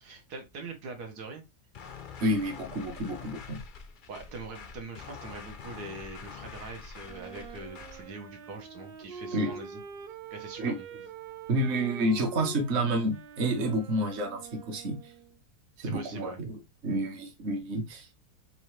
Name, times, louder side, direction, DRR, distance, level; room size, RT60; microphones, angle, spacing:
voice 1, 0.0-1.4 4.1-9.8 10.3-10.9 15.8-16.4, right 3 dB, 90° right, 1.6 m, -43 dB
sound 1, 1.7-8.1, left 6 dB, 75° left, 0.4 m, -45 dB
voice 2, 2.2-3.6 9.3-9.5 10.6-10.8 11.5-15.1 15.8-18.1, right 1 dB, 50° right, 1.2 m, -29 dB
Wind instrument woodwind instrument, 7.0-15.4, right 5 dB, 70° right, 0.5 m, -44 dB
4.7 x 2.8 x 3.1 m
omnidirectional pair, 1.7 m